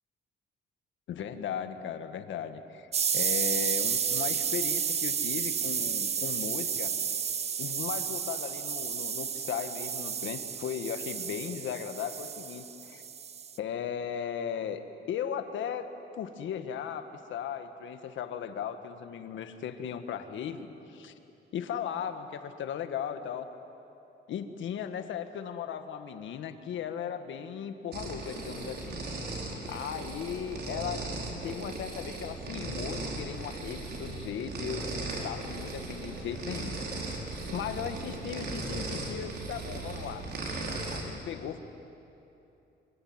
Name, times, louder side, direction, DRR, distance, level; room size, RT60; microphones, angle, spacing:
voice 1, 1.1-6.9 7.6-13.0 13.6-14.8 15.1-21.1 21.5-23.5 24.3-29.4 29.7-31.1 31.4-37.2 37.5-40.3 40.9-41.6, left 8 dB, 85° left, 8 dB, 1.7 m, -37 dB
sound 1, 2.9-13.6, right 7 dB, 35° right, 0.6 m, -31 dB
sound 2, 27.9-41.0, right 2 dB, 55° right, 5.0 m, -37 dB
26.0 x 24.0 x 9.6 m, 2.9 s
cardioid pair, 150°, 19 cm